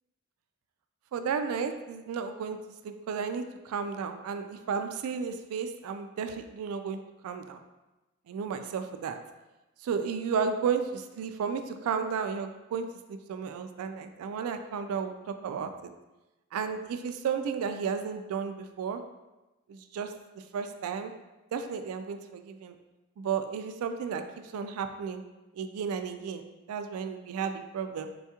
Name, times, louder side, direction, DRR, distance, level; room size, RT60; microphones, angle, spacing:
voice 1, 1.1-2.6 2.8-7.6 8.3-9.2 9.8-15.9 16.5-19.0 19.7-20.1 20.5-21.1 21.5-22.8 23.2-25.3 25.5-28.1, right 6 dB, 80° right, 10 dB, 0.3 m, -33 dB
4.2 x 2.3 x 2.8 m, 1.1 s
head